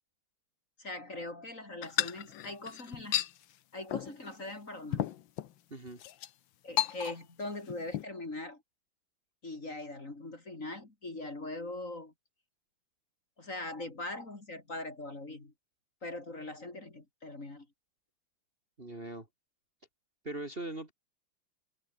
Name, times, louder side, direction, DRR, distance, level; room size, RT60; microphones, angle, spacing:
voice 1, 0.8-3.2 3.7-5.1 6.6-8.6 9.4-12.1 13.4-15.5 16.0-17.7, left 2 dB, 35° left, 3.9 m, -41 dB
sound 1, 1.8-3.3 3.9-4.2 4.5-4.6 4.9-5.5 6.0-6.3 6.8-7.4 7.7-8.0, left 12 dB, 70° left, 1.6 m, -33 dB
voice 2, 5.7-6.0 18.8-19.3 20.2-20.9, right 2 dB, 25° right, 3.1 m, -40 dB
omnidirectional pair, 2.4 m